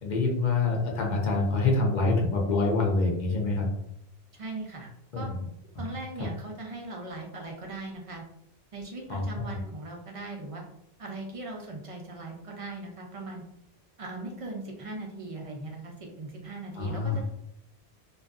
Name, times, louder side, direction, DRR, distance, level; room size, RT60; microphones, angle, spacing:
voice 1, 0.0-3.7 5.1-5.2 5.8-5.9 9.1-9.4 16.8-17.2, left 3 dB, 50° left, 0 dB, 0.7 m, -26 dB
voice 2, 4.3-5.3 5.8-8.2 8.7-10.6 11.0-13.4 14.0-17.3, right 2 dB, 50° right, 0 dB, 0.4 m, -39 dB
2.6 x 2.3 x 2.3 m, 0.76 s
omnidirectional pair, 1.1 m